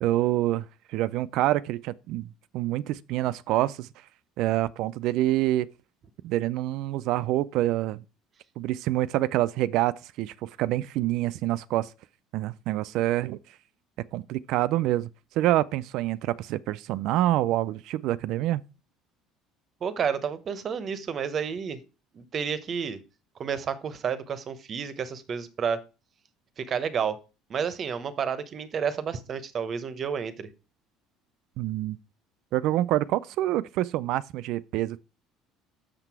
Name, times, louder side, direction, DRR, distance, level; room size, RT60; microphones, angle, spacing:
voice 1, 0.0-3.9 4.4-5.7 6.2-8.0 8.6-11.9 12.3-13.4 14.1-15.1 15.4-18.6 31.6-32.0 32.5-35.0, right 15 dB, 65° right, 0.4 m, -26 dB
voice 2, 19.8-21.8 22.1-23.0 23.4-25.8 26.6-27.2 27.5-30.5, right 7 dB, 35° right, 0.8 m, -30 dB
6.5 x 6.0 x 4.6 m
cardioid pair, 140°, 0 cm